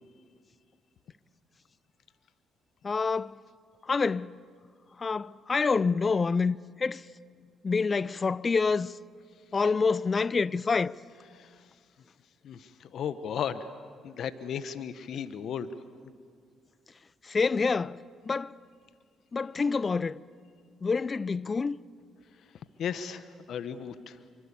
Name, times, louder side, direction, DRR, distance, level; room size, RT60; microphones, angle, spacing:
voice 1, 2.8-3.4 3.8-4.3 5.0-7.0 7.6-9.0 9.5-11.0 17.2-18.6 19.3-20.2 20.8-21.8, left 4 dB, 35° left, 0.6 m, -27 dB
voice 2, 11.3-11.7 12.4-13.7 14.0-15.7 22.5-24.2, left 8 dB, 65° left, 1.2 m, -35 dB
26.5 x 24.5 x 8.5 m
supercardioid pair, 60°, 0 cm